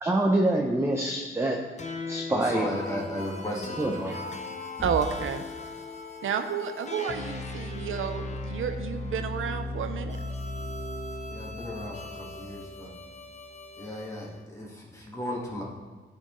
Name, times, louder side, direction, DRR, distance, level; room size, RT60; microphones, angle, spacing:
voice 1, 0.0-1.6 2.1-2.7 3.8-4.1, right 1 dB, 15° right, 1 dB, 0.6 m, -25 dB
sound 1, 1.8-14.3, left 2 dB, 35° left, 0.7 m, -37 dB
voice 2, 2.3-4.2 4.8-4.9 11.3-12.9 13.8-15.6, left 1 dB, 15° left, -4 dB, 1.6 m, -35 dB
voice 3, 4.8-5.4 6.2-10.2, right 7 dB, 85° right, 8 dB, 0.6 m, -31 dB
13.0 x 4.4 x 3.1 m, 1.4 s
wide cardioid pair, 135°, 20 cm